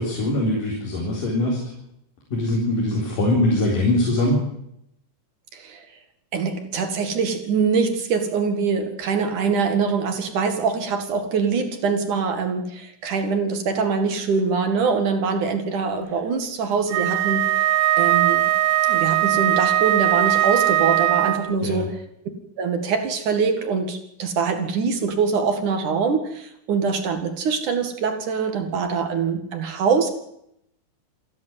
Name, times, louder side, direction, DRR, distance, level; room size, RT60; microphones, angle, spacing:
voice 1, 0.0-1.6 2.3-4.4 21.6-21.9, left 1 dB, 55° left, -2 dB, 5.5 m, -22 dB
voice 2, 5.5-5.9 6.3-17.5 18.0-18.5 18.9-21.9 22.6-30.1, right 5 dB, 55° right, 7 dB, 3.2 m, -23 dB
Wind instrument woodwind instrument, 16.9-21.6, right 14 dB, 85° right, 3.1 m, -20 dB
28.0 x 11.0 x 9.3 m, 0.76 s
omnidirectional pair, 4.7 m